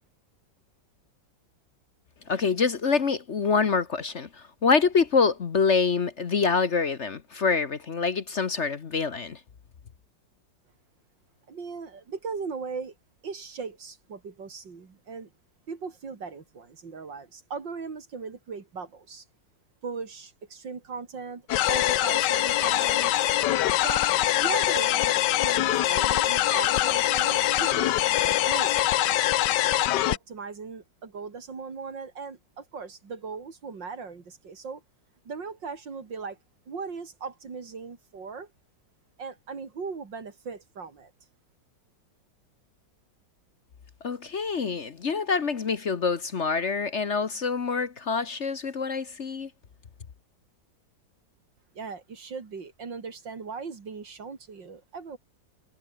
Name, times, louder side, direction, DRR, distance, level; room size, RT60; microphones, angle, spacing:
voice 1, 2.3-4.3 4.6-9.4 44.0-49.5, left 5 dB, 45° left, 1.3 m, -26 dB
voice 2, 11.5-12.9 13.2-15.3 15.7-19.3 19.8-23.2 23.8-24.1 24.3-28.0 28.3-28.8 30.1-34.8 35.3-36.4 36.7-38.5 39.2-41.1 51.7-55.2, right 5 dB, 85° right, 3.6 m, -38 dB
sound 1, 21.5-30.2, left 13 dB, 75° left, 1.3 m, -23 dB
omnidirectional pair, 1.9 m